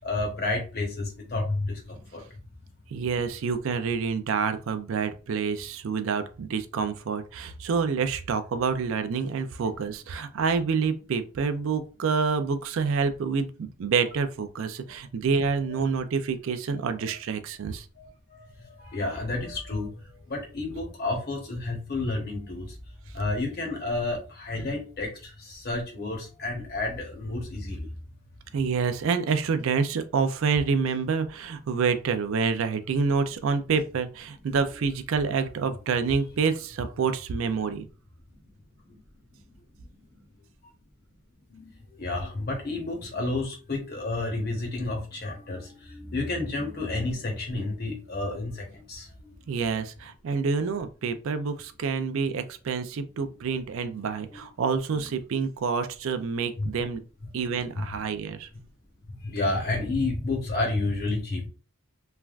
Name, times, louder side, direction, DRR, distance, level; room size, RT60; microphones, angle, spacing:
voice 1, 0.0-2.2 18.0-22.7 23.1-27.9 38.9-39.0 41.5-49.3 53.2-53.3 54.3-54.4 56.6-56.7 57.8-57.9 59.2-61.5, left 2 dB, 45° left, 1 dB, 0.9 m, -31 dB
voice 2, 2.9-17.9 28.5-37.9 49.5-57.0 57.3-58.5, right 5 dB, 65° right, 9 dB, 0.4 m, -27 dB
3.3 x 2.2 x 2.4 m, 0.35 s
head